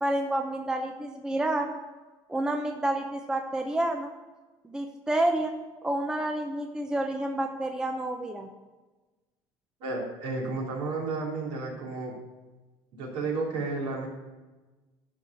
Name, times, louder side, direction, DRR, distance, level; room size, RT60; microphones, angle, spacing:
voice 1, 0.0-1.7 2.3-4.1 4.6-5.5 5.8-8.5, right 1 dB, 5° right, 4 dB, 0.6 m, -29 dB
voice 2, 9.8-12.1 12.9-14.1, right 3 dB, 65° right, -3 dB, 3.3 m, -32 dB
11.5 x 4.8 x 6.8 m, 1.2 s
cardioid pair, 145°, 10 cm